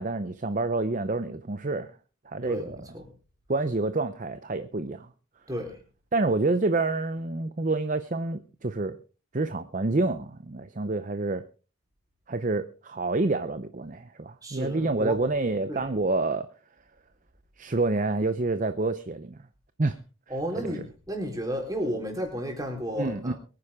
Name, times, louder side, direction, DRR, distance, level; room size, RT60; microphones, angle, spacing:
voice 1, 0.0-1.9 2.3-2.9 3.5-5.1 6.1-9.0 9.3-11.4 12.3-16.5 17.6-19.4 19.8-20.0 20.6-20.7 23.0-23.3, right 3 dB, 35° right, 11 dB, 0.6 m, -28 dB
voice 2, 2.4-3.0 5.5-5.8 14.4-15.2 15.7-15.8 20.3-23.3, equal, 15° right, 1 dB, 4.1 m, -32 dB
23.0 x 9.8 x 3.6 m, 0.36 s
head